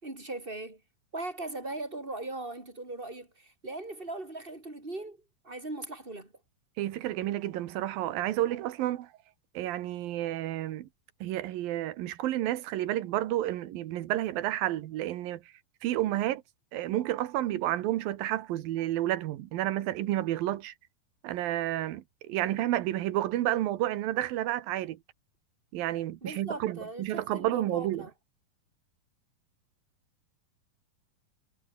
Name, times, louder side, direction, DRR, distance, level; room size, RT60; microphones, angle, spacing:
voice 1, 0.0-0.8 1.1-6.3 26.2-28.1, right 2 dB, 15° right, 5.9 m, -39 dB
voice 2, 6.8-9.1 9.5-10.9 11.2-15.4 15.8-16.4 16.7-20.7 21.2-25.0 25.7-28.0, right 14 dB, 90° right, 3.0 m, -30 dB
omnidirectional pair, 4.0 m